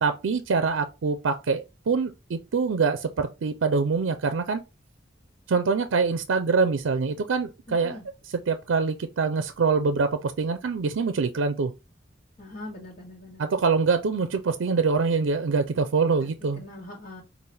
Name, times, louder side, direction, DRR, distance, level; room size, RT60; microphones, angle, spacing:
voice 1, 0.0-4.6 5.5-8.0 8.5-11.7 13.4-16.6, right 4 dB, 90° right, 0.4 m, -24 dB
voice 2, 7.7-8.1 12.4-13.4 16.2-16.3 16.6-17.2, left 2 dB, 40° left, 1.3 m, -42 dB
5.4 x 2.5 x 3.2 m
head